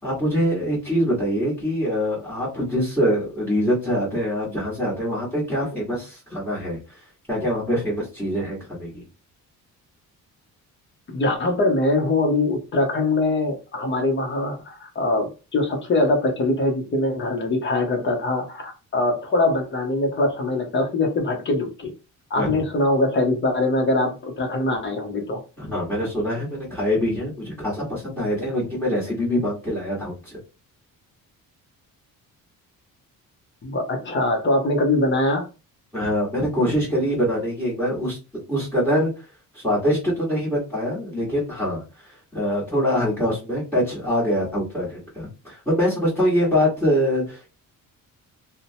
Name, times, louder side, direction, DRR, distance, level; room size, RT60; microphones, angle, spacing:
voice 1, 0.0-6.8 7.3-9.0 22.4-22.5 25.6-30.4 35.9-39.1 39.5-47.5, equal, 5° left, -11 dB, 1.3 m, -24 dB
voice 2, 11.1-21.9 22.3-25.4 33.6-35.4, left 2 dB, 35° left, 3 dB, 0.8 m, -22 dB
2.8 x 2.1 x 2.7 m, 0.31 s
cardioid pair, 145°, 34 cm